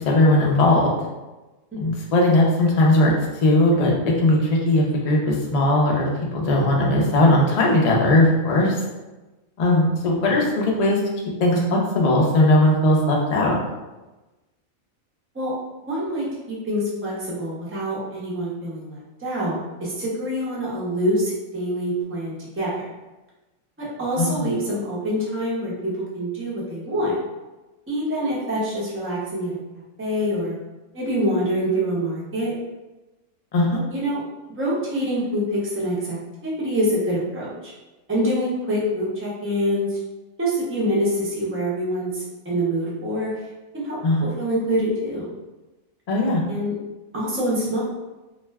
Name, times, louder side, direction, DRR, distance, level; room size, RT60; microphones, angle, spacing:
voice 1, 0.1-0.9 1.8-3.1 3.4-8.8 9.6-11.0 11.4-13.6 24.2-24.4 33.5-33.8 44.0-44.3 46.1-46.4, left 1 dB, 80° left, -1 dB, 0.3 m, -18 dB
voice 2, 15.9-22.7 23.8-27.2 27.9-30.6 30.9-32.6 33.9-34.2 34.6-37.7 38.1-40.0 40.4-43.3 43.7-45.3 46.5-46.7 47.1-47.8, equal, 15° right, -7 dB, 0.4 m, -25 dB
2.4 x 2.2 x 3.3 m, 1.1 s
omnidirectional pair, 1.4 m